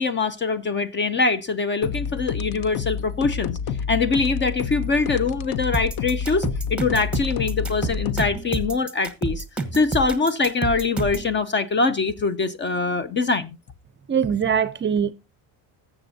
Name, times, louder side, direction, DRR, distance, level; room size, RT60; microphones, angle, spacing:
voice 1, 0.0-3.6 3.9-9.4 9.7-13.6, left 4 dB, 30° left, 0.5 m, -23 dB
sound 1, 1.8-8.3, left 7 dB, 60° left, 0.7 m, -29 dB
sound 2, 5.7-11.3, right 3 dB, 5° right, 1.0 m, -29 dB
voice 2, 14.1-15.1, right 7 dB, 30° right, 0.5 m, -22 dB
20.0 x 7.1 x 2.7 m
cardioid pair, 140°, 41 cm